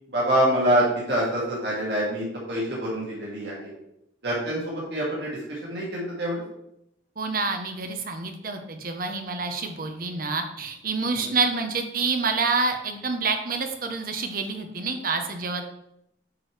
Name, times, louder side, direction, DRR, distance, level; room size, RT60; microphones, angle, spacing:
voice 1, 0.1-3.7 4.2-6.4 11.2-11.4, equal, 75° right, -5 dB, 2.1 m, -26 dB
voice 2, 7.2-15.6, right 4 dB, 55° right, 6 dB, 0.9 m, -27 dB
8.7 x 4.8 x 3.3 m, 0.81 s
head